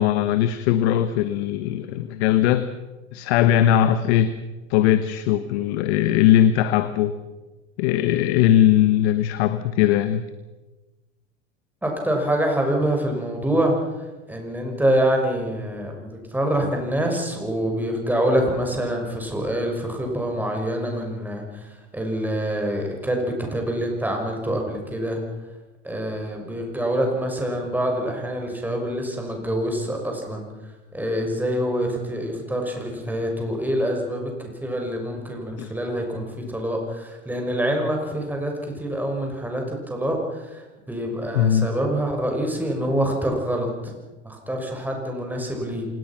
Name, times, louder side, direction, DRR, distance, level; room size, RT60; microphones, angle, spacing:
voice 1, 0.0-2.7 3.1-4.4 4.7-7.1 7.8-10.2 35.6-35.7 41.3-41.7, left 11 dB, 55° left, 11 dB, 1.4 m, -19 dB
voice 2, 11.8-25.2 25.8-43.9 44.2-45.9, right 1 dB, 5° right, 2 dB, 6.1 m, -26 dB
26.5 x 19.0 x 6.1 m, 1.1 s
hypercardioid pair, 110°, 38 cm